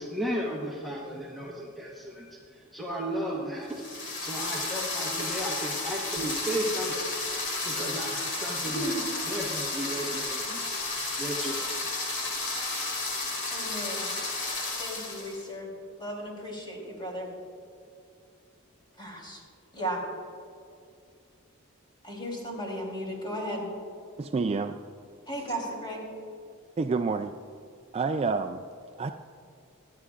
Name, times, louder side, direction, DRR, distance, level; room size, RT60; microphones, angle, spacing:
voice 1, 0.0-3.9 4.2-7.2 7.6-8.9 9.3-10.7 11.2-11.8, equal, ahead, -5 dB, 1.2 m, -34 dB
sound 1, 3.7-15.4, left 3 dB, 60° left, 2.5 m, -32 dB
voice 2, 8.7-9.0 13.5-14.1 14.8-15.7 16.0-17.3 19.0-19.4 19.7-20.0 22.0-23.7 25.3-26.1, right 1 dB, 25° left, -2 dB, 3.4 m, -35 dB
voice 3, 24.2-24.8 26.8-27.3 27.9-28.6 29.0-29.1, right 4 dB, 30° right, 7 dB, 0.3 m, -28 dB
25.0 x 9.4 x 2.5 m, 2.4 s
head